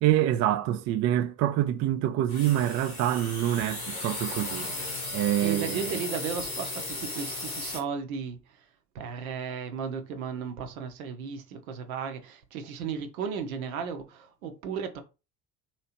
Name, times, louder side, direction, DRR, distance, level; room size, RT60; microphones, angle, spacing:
voice 1, 0.0-6.0, right 12 dB, 40° right, 0.4 m, -26 dB
sound 1, 2.3-7.8, left 2 dB, 85° left, 1.1 m, -36 dB
voice 2, 5.4-8.4 8.9-15.0, right 6 dB, 70° right, 0.7 m, -35 dB
3.1 x 2.9 x 2.9 m
figure-of-eight pair, 55°, 43 cm